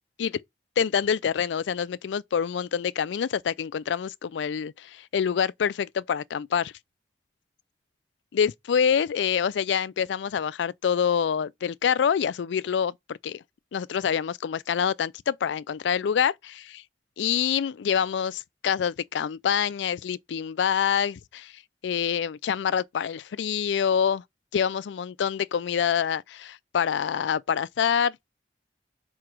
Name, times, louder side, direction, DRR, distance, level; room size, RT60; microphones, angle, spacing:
voice 1, 0.8-6.7 8.3-13.4 13.7-16.8 17.2-24.2 24.5-28.2, left 7 dB, 90° left, 0.4 m, -26 dB
4.9 x 4.5 x 5.9 m
head